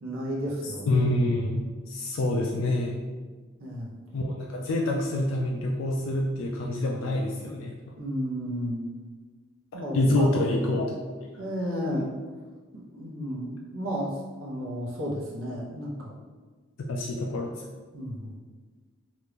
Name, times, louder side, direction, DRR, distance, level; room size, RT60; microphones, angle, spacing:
voice 1, 0.0-1.0 3.6-3.9 8.0-8.8 9.7-10.3 11.4-12.1 12.9-14.1 14.4-16.1 17.9-18.3, equal, 85° right, -3 dB, 0.8 m, -32 dB
voice 2, 0.9-3.0 4.1-7.7 9.7-11.0 16.9-17.5, left 1 dB, 80° left, 0 dB, 0.4 m, -26 dB
3.0 x 2.5 x 3.3 m, 1.4 s
head